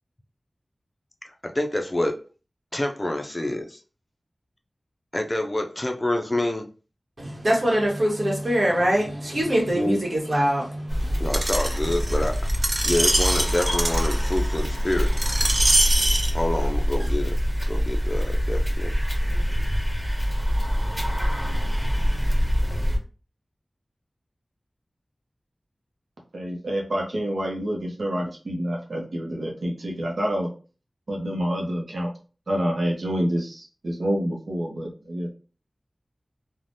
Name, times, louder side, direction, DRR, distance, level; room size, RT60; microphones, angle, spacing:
voice 1, 1.2-2.2 2.7-3.8 5.1-6.7 9.7-10.0 11.2-12.4 12.8-15.1 16.3-17.4 17.7-18.9, left 1 dB, 25° left, 4 dB, 0.4 m, -27 dB
voice 2, 7.2-11.3, equal, 60° right, -2 dB, 1.1 m, -23 dB
sound 1, 10.9-23.0, equal, 10° right, 1.2 m, -25 dB
Screech, 11.3-16.3 17.0-17.1, right 1 dB, 40° right, 0.4 m, -24 dB
voice 3, 26.3-30.5 31.1-32.1 32.5-35.3, equal, 80° right, 0 dB, 0.6 m, -27 dB
3.2 x 2.1 x 2.6 m, 0.37 s
wide cardioid pair, 70°, 0 cm